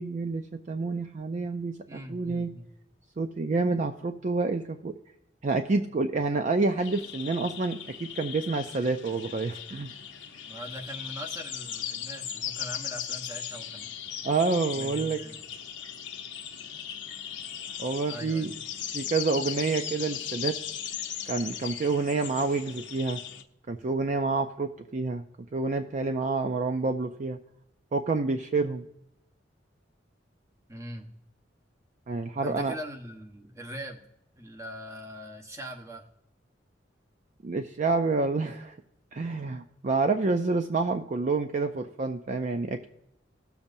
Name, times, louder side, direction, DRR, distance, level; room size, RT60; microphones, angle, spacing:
voice 1, 0.0-2.5 3.2-4.9 5.4-9.9 14.2-15.2 17.8-18.5 18.9-20.6 21.3-23.2 23.7-25.2 25.5-27.4 27.9-28.8 32.1-32.7 37.4-38.8 39.1-42.9, right 3 dB, 40° right, 6 dB, 0.5 m, -28 dB
voice 2, 1.9-2.7 10.5-13.9 14.7-15.4 18.1-18.6 30.7-31.1 32.4-34.0 34.4-36.0, equal, 15° right, 2 dB, 1.1 m, -41 dB
sound 1, 6.8-23.4, left 9 dB, 90° left, 0.9 m, -38 dB
19.5 x 7.0 x 2.7 m, 0.83 s
head